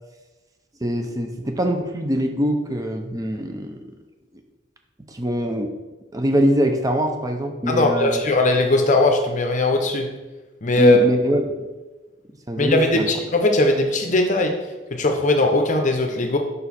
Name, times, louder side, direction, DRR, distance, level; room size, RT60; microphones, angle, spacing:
voice 1, 0.8-3.8 5.1-5.7 6.1-8.2 10.8-11.7 12.5-13.1, equal, 20° right, 4 dB, 0.5 m, -23 dB
voice 2, 7.7-10.1 10.6-11.0 12.6-14.6 14.9-16.4, left 2 dB, 40° left, 4 dB, 0.7 m, -19 dB
5.3 x 4.5 x 4.1 m, 1.2 s
head